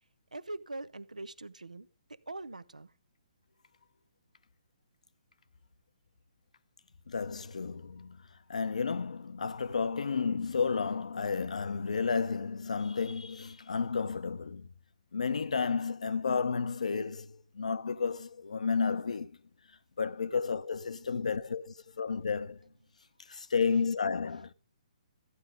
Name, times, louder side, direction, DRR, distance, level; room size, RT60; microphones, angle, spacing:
voice 1, 0.3-2.9, right 2 dB, 80° right, 0.8 m, -43 dB
voice 2, 7.1-8.2 8.5-14.7 15.1-19.4 20.0-22.6 23.3-24.5, left 5 dB, 70° left, 0.8 m, -32 dB
14.0 x 9.6 x 5.1 m
figure-of-eight pair, 130°, 4 cm